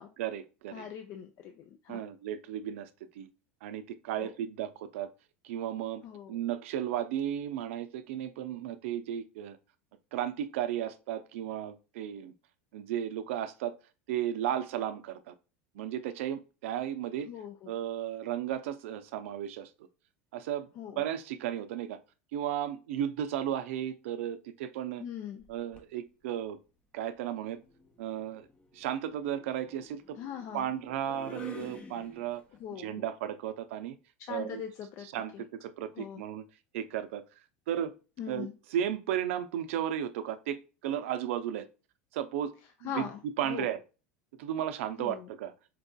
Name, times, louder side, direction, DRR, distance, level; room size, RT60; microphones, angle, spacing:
voice 1, 0.2-0.8 1.9-2.9 3.2-3.3 3.6-5.1 5.4-6.0 6.3-9.6 10.1-12.3 12.7-13.7 14.1-15.3 15.7-17.3 17.7-19.7 20.3-20.7 21.0-22.0 22.3-25.0 25.5-26.6 26.9-27.6 28.0-28.5 28.7-30.2 30.5-32.4 32.7-34.0 34.3-34.6 35.1-36.4 36.7-37.2 37.7-37.9 38.3-41.7 42.1-42.5 42.8-43.1 43.4-43.8 44.4-45.5, right 10 dB, 80° right, 0.4 m, -34 dB
voice 2, 0.7-2.0 4.2-4.3 6.0-6.4 17.2-17.7 20.8-21.0 25.0-25.4 30.2-30.7 32.6-33.1 34.2-35.1 35.3-35.4 35.9-36.2 38.2-38.5 42.8-43.7 45.0-45.3, left 8 dB, 50° left, 0.4 m, -41 dB
sound 1, 25.4-25.9 27.3-32.6, left 1 dB, 15° left, 0.7 m, -50 dB
4.5 x 2.5 x 2.2 m
supercardioid pair, 105°, 7 cm